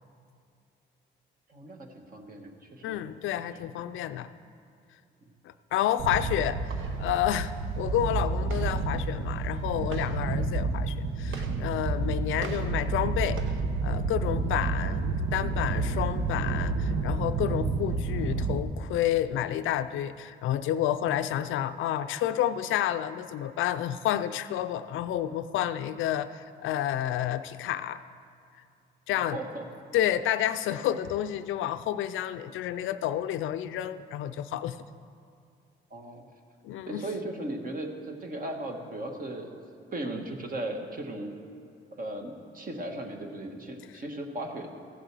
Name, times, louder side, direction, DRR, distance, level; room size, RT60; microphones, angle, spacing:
voice 1, 1.5-3.0 3.3-3.4 5.2-5.3 29.3-29.6 35.9-36.3 36.9-39.5 39.9-41.4 41.9-44.7, right 1 dB, 45° right, 3 dB, 1.5 m, -37 dB
voice 2, 2.8-4.3 5.7-6.6 7.0-13.4 13.8-15.0 15.3-28.0 29.1-29.4 29.9-34.8 36.6-37.0, left 11 dB, 80° left, 12 dB, 0.5 m, -30 dB
sound 1, 6.0-18.6, right 3 dB, 80° right, 0.9 m, -30 dB
15.0 x 6.6 x 6.1 m, 2.4 s
cardioid pair, 90°, 20 cm